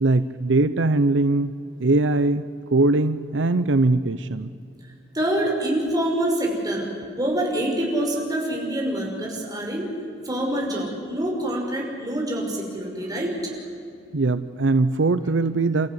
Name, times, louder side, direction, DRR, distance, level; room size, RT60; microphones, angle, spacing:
voice 1, 0.0-1.5 1.8-2.4 2.7-4.5 14.1-15.9, right 2 dB, 75° right, 13 dB, 0.7 m, -21 dB
voice 2, 5.1-6.9 7.1-10.0 10.2-13.5, right 1 dB, 20° right, -1 dB, 5.7 m, -26 dB
29.5 x 14.5 x 9.7 m, 2.5 s
head